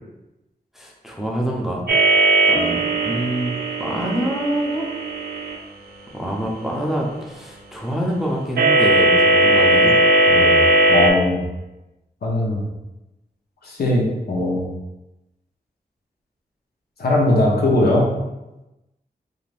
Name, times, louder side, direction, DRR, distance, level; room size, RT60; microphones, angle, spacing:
voice 1, 0.7-1.9 2.5-3.5 3.8-4.9 6.1-10.0, right 1 dB, ahead, -2 dB, 0.4 m, -26 dB
sound 1, 1.9-5.6 8.6-11.1, right 2 dB, 70° right, 0.4 m, -17 dB
voice 2, 10.3-10.6 10.9-11.4 12.2-12.6 13.6-14.6 17.0-18.1, left 1 dB, 75° left, -2 dB, 0.7 m, -19 dB
2.5 x 2.5 x 3.2 m, 0.97 s
wide cardioid pair, 160°, 17 cm